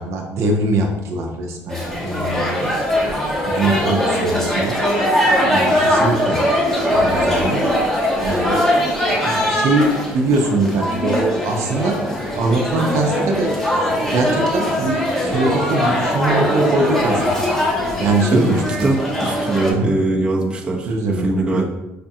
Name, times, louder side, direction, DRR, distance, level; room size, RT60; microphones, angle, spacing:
voice 1, 0.0-2.8 3.5-4.8 5.5-6.4 6.9-7.7 8.2-8.6 9.2-12.1 12.3-13.6 13.9-17.2 18.0-18.9 19.7-19.9 20.7-21.6, right 2 dB, 65° right, 1 dB, 0.5 m, -22 dB
sound 1, 1.7-19.7, equal, 10° left, 0.9 m, -20 dB
sound 2, 10.8-20.6, left 4 dB, 40° left, 0.4 m, -36 dB
voice 2, 18.8-21.6, right 2 dB, 20° right, -1 dB, 0.6 m, -21 dB
4.9 x 2.2 x 2.7 m, 0.99 s
cardioid pair, 105°, 5 cm